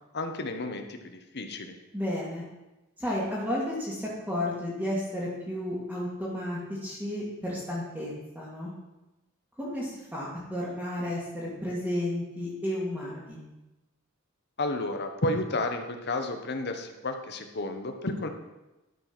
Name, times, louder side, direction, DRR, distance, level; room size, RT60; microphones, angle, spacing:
voice 1, 0.1-1.8 14.6-18.3, left 2 dB, 55° left, 6 dB, 1.1 m, -32 dB
voice 2, 1.9-2.4 3.0-8.7 9.6-13.4, left 1 dB, 5° right, -8 dB, 2.1 m, -32 dB
12.5 x 5.0 x 6.1 m, 1.0 s
head